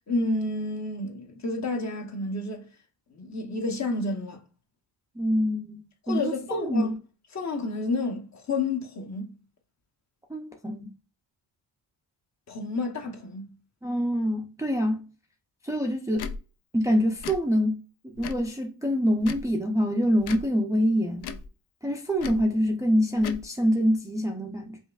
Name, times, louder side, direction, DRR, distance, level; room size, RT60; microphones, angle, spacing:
voice 1, 0.1-2.7 3.1-4.4 6.0-6.9 7.3-9.3 12.5-13.4, left 3 dB, 35° left, 0.8 m, -30 dB
voice 2, 5.2-5.8 6.1-7.0 10.3-10.9 13.8-15.1 15.6-16.3 16.7-17.8 18.2-21.3 21.8-24.8, equal, 5° right, 0.5 m, -25 dB
Tick / Tick-tock, 16.1-16.4 17.2-17.4 18.2-18.5 19.2-19.5 20.2-20.5 21.2-21.5 22.2-22.4 23.2-23.4, left 5 dB, 60° left, 0.5 m, -36 dB
5.3 x 2.4 x 2.3 m
cardioid pair, 115°, 45 cm